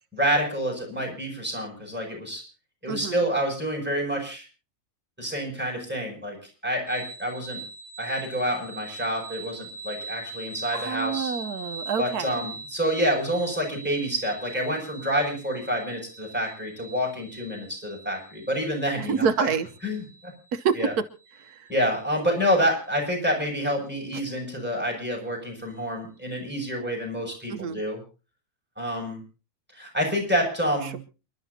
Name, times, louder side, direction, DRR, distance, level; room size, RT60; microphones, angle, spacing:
voice 1, 0.1-2.4 2.8-4.4 5.2-6.4 6.6-7.6 8.0-11.3 12.0-19.5 19.8-20.0 20.8-20.9 21.7-28.0 28.8-29.2 29.7-31.0, equal, 5° right, 0 dB, 7.0 m, -28 dB
sound 1, 6.9-22.4, right 3 dB, 65° left, 5.3 m, -42 dB
voice 2, 10.7-12.4 19.0-19.7 20.5-20.8 21.3-21.7 27.5-27.8 30.8-31.0, right 6 dB, 85° right, 9 dB, 1.4 m, -27 dB
29.0 x 12.0 x 2.8 m, 0.34 s
omnidirectional pair, 1.6 m